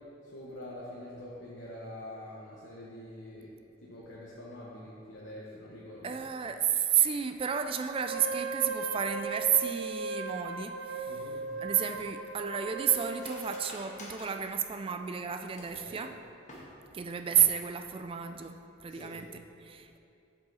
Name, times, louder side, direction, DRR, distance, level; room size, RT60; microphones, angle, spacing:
voice 1, 0.2-3.5 3.8-6.2 11.1-11.4 15.7-16.0 18.9-19.1, left 1 dB, 70° left, -6 dB, 1.1 m, -45 dB
voice 2, 6.0-16.2 16.9-20.0, right 8 dB, 30° right, 7 dB, 0.3 m, -31 dB
Wind instrument woodwind instrument, 8.0-13.6, right 4 dB, 85° right, 0.6 m, -37 dB
Cutlery silverware, 11.4-15.9 16.4-17.1 17.4-17.5 17.8-18.2 18.5-18.7, left 1 dB, 40° left, 1.5 m, -50 dB
7.6 x 7.4 x 4.1 m, 2.6 s
head